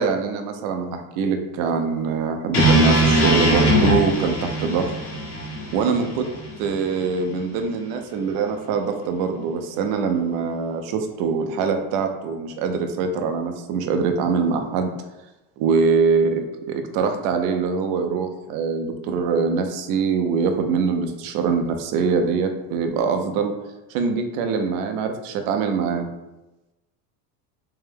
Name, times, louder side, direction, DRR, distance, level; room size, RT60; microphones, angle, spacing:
voice 1, 0.0-4.9 5.7-6.3 6.6-14.9 15.6-23.5 23.9-26.1, right 5 dB, 65° right, 5 dB, 0.7 m, -23 dB
sound 1, 2.5-6.7, right 1 dB, 45° left, 1.4 m, -20 dB
3.4 x 3.1 x 3.4 m, 1.0 s
supercardioid pair, 120°, 36 cm